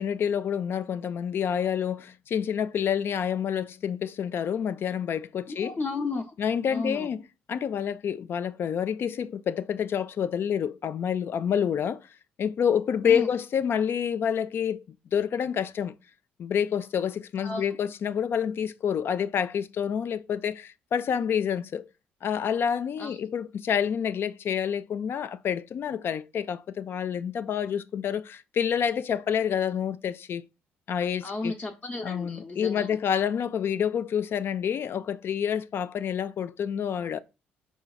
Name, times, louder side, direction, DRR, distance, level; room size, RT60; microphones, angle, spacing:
voice 1, 0.0-5.8 6.4-7.2 7.5-12.0 12.4-14.8 15.1-15.9 16.4-21.9 22.2-30.4 30.9-31.5 32.0-37.2, left 8 dB, 50° left, 0.4 m, -28 dB
voice 2, 5.5-6.3 6.7-7.1 13.0-13.3 17.4-17.7 23.0-23.2 31.2-32.9, left 3 dB, 35° left, 0.8 m, -33 dB
4.5 x 4.1 x 2.3 m
hypercardioid pair, 55°, 5 cm